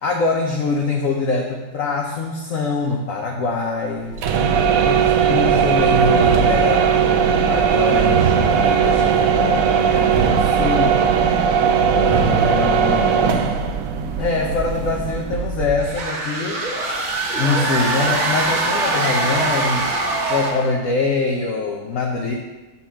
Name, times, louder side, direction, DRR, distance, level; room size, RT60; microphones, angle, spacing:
voice 1, 0.0-4.1 4.8-11.0 11.9-13.5 14.2-16.6 17.4-19.9 20.3-22.3, left 3 dB, 65° left, -1 dB, 1.1 m, -24 dB
sound 1, 4.1-16.0, right 7 dB, 70° right, 0.9 m, -18 dB
sound 2, 15.8-20.7, right 2 dB, 55° right, 1.3 m, -22 dB
6.3 x 4.3 x 5.7 m, 1.1 s
omnidirectional pair, 1.6 m